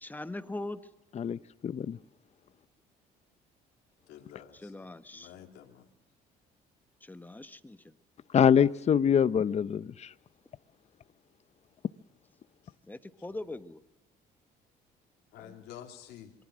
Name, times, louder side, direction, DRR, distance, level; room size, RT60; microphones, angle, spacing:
voice 1, 0.0-0.8 4.6-5.3 7.0-7.9 12.9-13.8 15.4-15.5, left 2 dB, 10° left, 1.3 m, -41 dB
voice 2, 1.6-2.0 8.3-9.9, left 8 dB, 40° left, 0.9 m, -24 dB
voice 3, 4.1-5.9 12.6-12.7 15.3-16.3, left 10 dB, 80° left, 3.2 m, -50 dB
26.5 x 23.0 x 6.3 m
cardioid pair, 110°, 17 cm